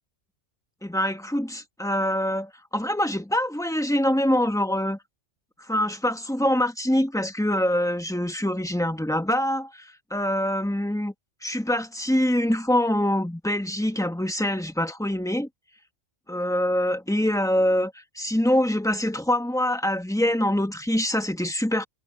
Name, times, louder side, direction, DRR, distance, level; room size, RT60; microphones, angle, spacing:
voice 1, 0.8-5.0 5.6-11.1 11.4-15.5 16.3-21.8, left 1 dB, 5° left, 1.3 m, -24 dB
omnidirectional pair, 1.2 m